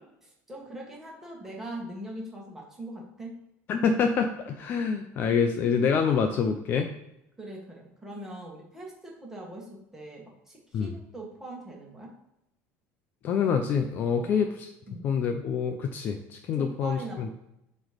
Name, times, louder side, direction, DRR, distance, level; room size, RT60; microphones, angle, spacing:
voice 1, 0.2-3.3 7.4-12.1 14.1-14.5 14.9-15.1 16.5-17.3, right 1 dB, 5° right, -2 dB, 1.5 m, -41 dB
voice 2, 3.7-6.9 10.7-10.9 13.2-14.7 15.0-17.3, left 6 dB, 35° left, 5 dB, 0.5 m, -26 dB
7.8 x 3.1 x 5.1 m, 0.84 s
cardioid pair, 175°, 6 cm